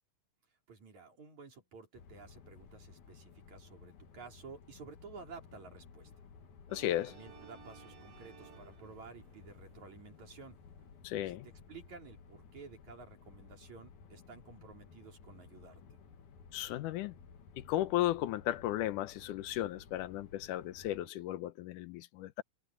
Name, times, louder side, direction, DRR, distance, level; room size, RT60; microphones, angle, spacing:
voice 1, 0.7-6.1 7.1-10.6 11.2-16.0, right 4 dB, 65° right, 5.8 m, -53 dB
sound 1, 1.9-21.1, left 5 dB, 70° left, 3.3 m, -56 dB
voice 2, 6.7-7.1 11.0-11.5 16.5-17.2 17.6-22.4, left 14 dB, 90° left, 2.3 m, -35 dB
sound 2, 6.7-11.1, right 7 dB, 85° right, 4.9 m, -58 dB
omnidirectional pair, 3.6 m